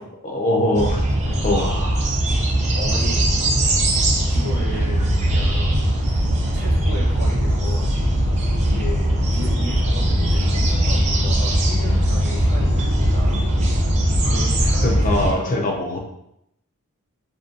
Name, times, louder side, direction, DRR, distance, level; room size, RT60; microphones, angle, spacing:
voice 1, 0.2-1.1 1.4-1.7 14.8-16.0, left 1 dB, 35° left, 1 dB, 0.4 m, -21 dB
sound 1, 0.7-15.3, right 1 dB, 30° right, 0.4 m, -20 dB
voice 2, 1.2-2.0 2.8-3.7 4.3-8.0 8.6-13.5 14.2-15.5, equal, 75° right, -5 dB, 0.6 m, -34 dB
2.5 x 2.1 x 2.4 m, 0.79 s
head